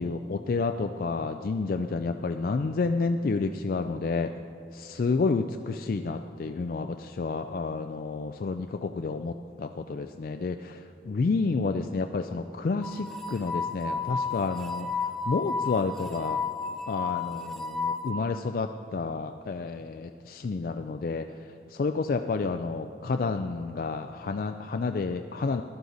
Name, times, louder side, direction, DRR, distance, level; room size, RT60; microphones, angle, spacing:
voice 1, 0.0-4.3 4.7-16.4 16.9-25.6, left 4 dB, 55° left, 6 dB, 0.4 m, -30 dB
sound 1, 12.8-18.1, left 5 dB, ahead, 0.8 m, -32 dB
14.5 x 11.5 x 4.0 m, 2.4 s
head